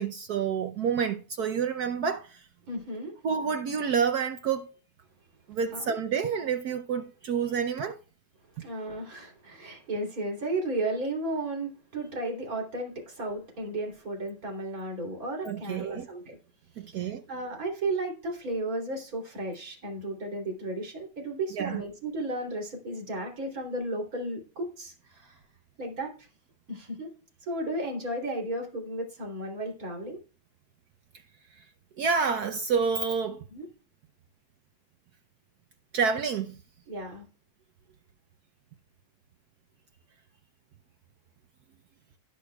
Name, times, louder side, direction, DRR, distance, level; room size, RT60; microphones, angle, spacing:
voice 1, 0.0-2.4 3.2-4.7 5.5-8.0 15.4-16.1 16.8-17.2 21.5-21.8 32.0-33.4 35.9-36.5, right 6 dB, 70° right, 0.9 m, -28 dB
voice 2, 2.7-3.2 5.7-5.9 7.5-7.6 8.6-16.4 16.9-25.4 25.8-26.3 26.7-27.1 27.4-30.2 33.5-33.7 36.9-37.3, right 2 dB, 40° right, 3.5 m, -34 dB
18.0 x 6.5 x 2.3 m
omnidirectional pair, 2.4 m